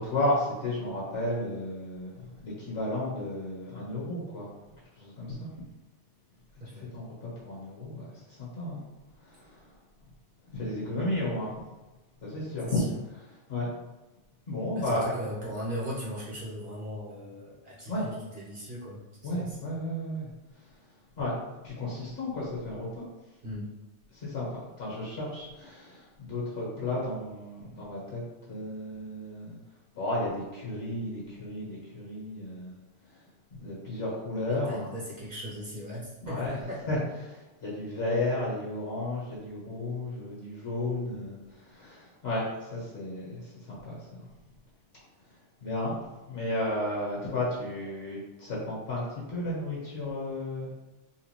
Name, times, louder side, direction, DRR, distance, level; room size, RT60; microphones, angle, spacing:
voice 1, 0.0-4.5 4.9-5.5 6.7-8.8 9.2-9.7 10.5-11.6 12.2-12.8 13.5-13.7 14.5-15.1 17.9-18.1 19.2-20.3 21.2-21.3 21.6-23.0 24.1-28.2 28.5-29.5 29.9-32.8 33.6-34.8 36.2-36.5 36.9-37.0 37.2-44.0 45.6-46.0 46.3-50.7, left 1 dB, 55° left, -6 dB, 1.6 m, -33 dB
voice 2, 12.6-12.9 14.7-19.0 19.3-19.7 23.4-23.7 34.4-36.8, equal, 50° right, -4 dB, 0.8 m, -38 dB
3.7 x 2.6 x 3.0 m, 1.1 s
omnidirectional pair, 1.2 m